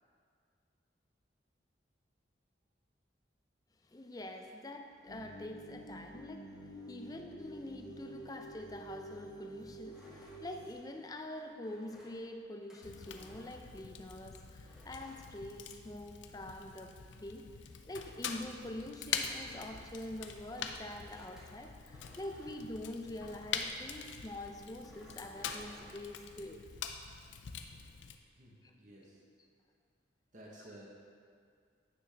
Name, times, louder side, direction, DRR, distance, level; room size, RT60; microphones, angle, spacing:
voice 1, 3.9-17.4 17.9-26.6 28.6-28.7, left 1 dB, 20° left, 4 dB, 0.4 m, -45 dB
sound 1, 5.1-10.7, right 1 dB, 55° left, 1.1 m, -49 dB
sound 2, 9.9-14.2 14.7-16.1 16.4-23.8 24.4-26.0, equal, 5° right, 1.9 m, -61 dB
Fire, 12.8-28.2, left 7 dB, 75° left, 0.5 m, -44 dB
voice 2, 28.4-29.2 30.3-30.9, right 1 dB, 40° right, -4 dB, 1.1 m, -54 dB
8.9 x 6.1 x 3.4 m, 2.2 s
head